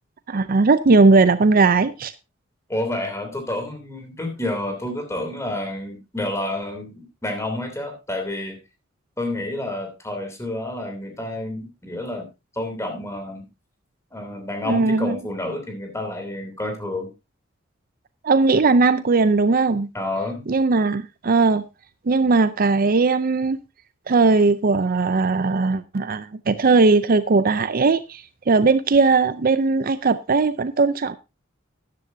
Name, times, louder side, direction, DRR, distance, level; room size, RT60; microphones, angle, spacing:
voice 1, 0.3-2.1 14.7-15.2 18.2-19.9 20.5-21.6 22.1-23.6 24.1-31.2, right 3 dB, 45° right, 0.5 m, -18 dB
voice 2, 2.7-8.6 9.2-12.3 12.5-13.5 14.1-17.1 19.9-20.4, left 1 dB, 15° left, 3.0 m, -29 dB
13.0 x 10.5 x 2.7 m
head